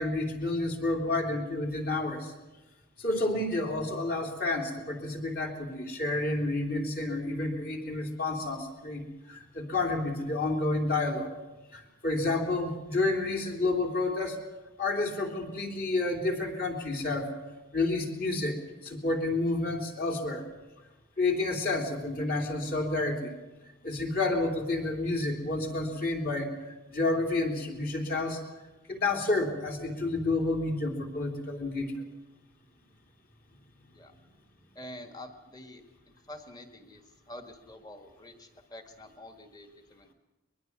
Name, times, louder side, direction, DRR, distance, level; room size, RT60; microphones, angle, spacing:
voice 1, 0.0-2.3 3.0-11.3 11.7-14.4 14.8-17.3 17.7-20.5 21.2-23.3 23.8-28.4 28.9-32.1, left 2 dB, 40° left, 2 dB, 3.3 m, -30 dB
voice 2, 34.8-35.8 36.3-37.0 37.3-40.1, left 1 dB, 20° left, 6 dB, 1.8 m, -47 dB
23.0 x 21.5 x 6.1 m, 1.1 s
head